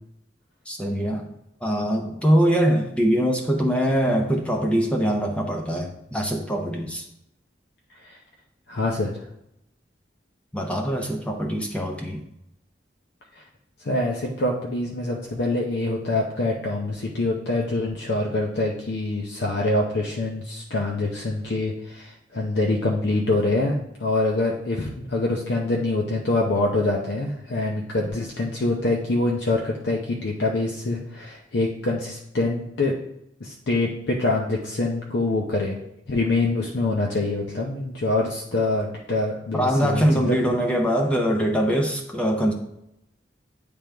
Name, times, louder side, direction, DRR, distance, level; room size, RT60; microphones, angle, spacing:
voice 1, 0.7-1.3 1.6-7.1 10.5-12.2 39.5-42.5, equal, 5° left, 1 dB, 0.5 m, -23 dB
voice 2, 8.7-9.1 13.3-13.4 13.8-33.0 33.4-35.8 36.1-40.5, left 2 dB, 70° left, -1 dB, 0.7 m, -25 dB
9.0 x 3.5 x 3.4 m, 0.80 s
head